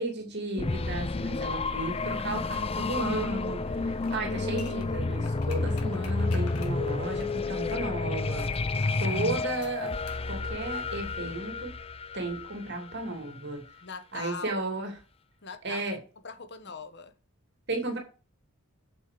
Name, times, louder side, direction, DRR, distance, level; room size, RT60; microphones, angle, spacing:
voice 1, 0.0-8.5 9.0-10.0 10.3-11.7 12.1-13.6 14.1-14.9 15.6-16.0 17.7-18.0, right 2 dB, 50° right, 2.9 m, -34 dB
sound 1, 0.6-13.3, left 3 dB, 25° left, 0.5 m, -31 dB
sound 2, 4.0-7.8 8.4-8.7 9.6-10.3 10.5-10.6, left 6 dB, 90° left, 2.1 m, -49 dB
voice 2, 8.6-9.2 13.8-14.6 15.4-17.1, left 4 dB, 50° left, 1.2 m, -42 dB
8.4 x 6.5 x 7.6 m
head